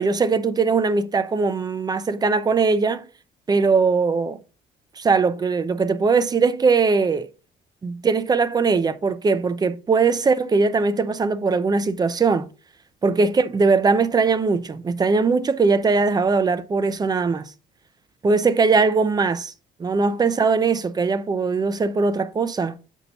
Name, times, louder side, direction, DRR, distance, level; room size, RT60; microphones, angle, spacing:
voice 1, 0.0-3.1 3.5-4.4 5.0-7.3 7.8-12.5 13.0-17.5 18.2-19.5 19.8-22.7, right 4 dB, 25° right, 0.5 m, -20 dB
6.6 x 4.5 x 4.0 m
cardioid pair, 110°, 17 cm